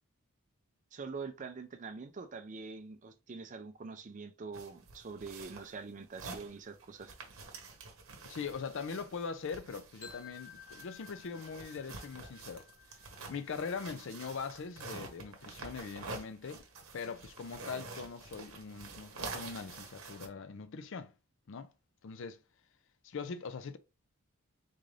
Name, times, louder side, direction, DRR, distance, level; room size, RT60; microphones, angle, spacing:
voice 1, 0.9-7.1, right 4 dB, 35° right, 0.4 m, -44 dB
sound 1, 4.5-20.3, right 3 dB, 65° right, 0.9 m, -48 dB
voice 2, 8.2-12.7 13.3-16.6 16.9-21.1 21.5-21.7 22.0-22.4 23.0-23.8, left 5 dB, 60° left, 0.4 m, -41 dB
sound 2, 10.0-15.9, left 8 dB, 75° left, 2.2 m, -56 dB
3.8 x 2.5 x 3.2 m
head